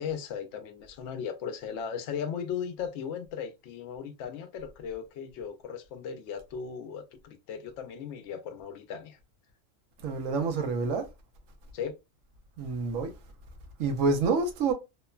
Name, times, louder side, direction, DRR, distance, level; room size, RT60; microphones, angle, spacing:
voice 1, 0.0-9.2 11.7-11.9, left 7 dB, 65° left, 0.8 m, -37 dB
voice 2, 10.0-11.1 12.6-13.1 13.8-14.7, right 4 dB, 80° right, 1.0 m, -27 dB
2.9 x 2.1 x 2.3 m
omnidirectional pair, 1.4 m